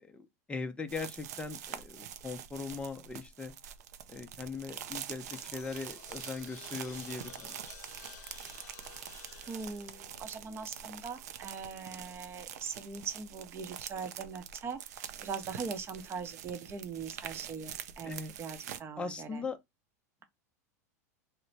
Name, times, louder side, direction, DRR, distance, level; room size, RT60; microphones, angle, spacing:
voice 1, 0.0-3.5 4.1-7.6 18.0-18.3 19.0-19.6, left 4 dB, 10° left, 0.6 m, -40 dB
Tea Bag, 0.9-18.8, right 9 dB, 80° right, 0.5 m, -45 dB
sound 1, 5.0-11.2, left 10 dB, 70° left, 0.7 m, -54 dB
voice 2, 9.5-19.4, right 5 dB, 30° right, 0.7 m, -41 dB
3.2 x 2.1 x 3.9 m
hypercardioid pair, 115°, 9 cm